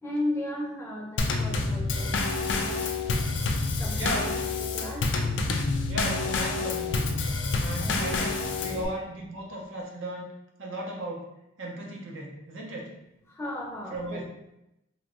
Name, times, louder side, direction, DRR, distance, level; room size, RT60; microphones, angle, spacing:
voice 1, 0.0-2.2 2.5-2.8 3.8-4.3 4.6-5.1 7.8-8.3 8.7-8.8 13.3-14.3, left 1 dB, 15° left, -3 dB, 0.6 m, -35 dB
Drum kit / Snare drum / Bass drum, 1.2-8.9, left 3 dB, 65° left, 0.4 m, -28 dB
voice 2, 3.9-4.3 5.9-7.2 7.6-10.3 10.6-11.3 11.6-12.9 13.9-14.3, right 1 dB, 75° right, -1 dB, 0.7 m, -36 dB
2.9 x 2.5 x 3.0 m, 0.86 s
head